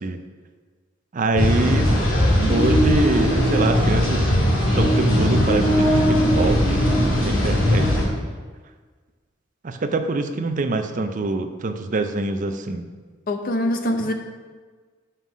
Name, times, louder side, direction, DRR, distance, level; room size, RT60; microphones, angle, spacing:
voice 1, 1.1-2.0 2.5-4.3 4.7-8.2 9.6-12.8, right 2 dB, 40° right, 8 dB, 0.5 m, -25 dB
sound 1, 1.3-8.0, equal, 85° left, 2.3 m, -19 dB
voice 2, 13.3-14.1, left 1 dB, 45° left, 5 dB, 0.7 m, -23 dB
5.8 x 5.5 x 6.1 m, 1.5 s
head